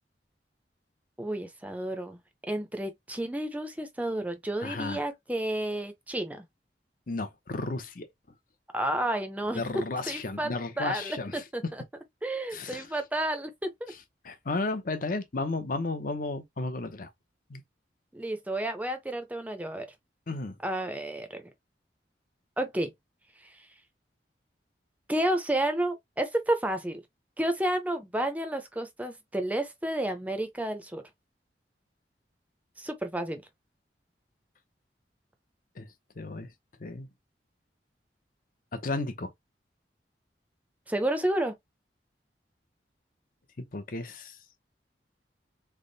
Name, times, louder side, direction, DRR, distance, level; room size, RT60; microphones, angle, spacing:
voice 1, 1.2-6.4 8.7-10.5 10.8-11.8 12.2-13.9 18.1-19.9 20.6-21.4 22.6-22.9 25.1-27.0 27.4-31.0 32.8-33.4 40.9-41.5, right 1 dB, 10° right, 0.6 m, -31 dB
voice 2, 4.6-5.0 7.1-8.1 9.5-11.7 12.5-12.9 14.2-17.1 17.5-17.6 20.3-20.6 35.8-35.9 36.2-36.5 36.8-37.1 38.7-39.3 43.6-44.4, left 3 dB, 50° left, 0.7 m, -33 dB
3.4 x 2.1 x 3.9 m
head